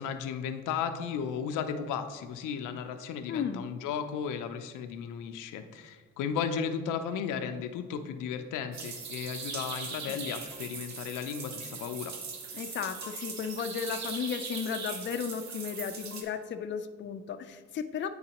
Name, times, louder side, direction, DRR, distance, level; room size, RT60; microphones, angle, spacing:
voice 1, 0.0-12.2, left 7 dB, 90° left, 8 dB, 0.5 m, -35 dB
voice 2, 3.3-3.7 10.1-10.2 12.5-18.1, left 7 dB, 40° left, 8 dB, 0.5 m, -34 dB
sound 1, 8.7-16.2, right 5 dB, 65° right, 1.0 m, -40 dB
9.7 x 3.9 x 2.9 m, 1.4 s
cardioid pair, 90°, 30 cm